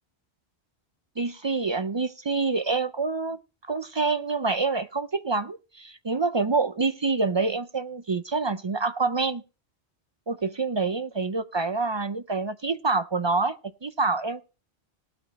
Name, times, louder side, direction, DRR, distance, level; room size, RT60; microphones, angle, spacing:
voice 1, 1.2-3.4 3.7-9.4 10.3-14.4, right 3 dB, 40° right, 0.4 m, -27 dB
18.5 x 8.4 x 3.1 m
omnidirectional pair, 1.1 m